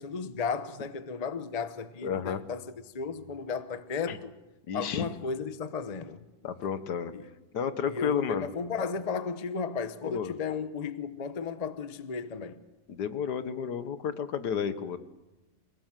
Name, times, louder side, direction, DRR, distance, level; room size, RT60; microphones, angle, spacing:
voice 1, 0.0-2.6 2.9-4.3 4.7-6.2 7.1-7.2 7.8-12.6, left 5 dB, 30° left, 0.8 m, -34 dB
voice 2, 2.0-2.4 4.1-4.2 4.7-5.1 6.4-7.1 7.5-8.5 10.0-10.3 12.9-15.0, left 7 dB, 60° left, 1.8 m, -31 dB
28.5 x 18.0 x 7.6 m
omnidirectional pair, 2.0 m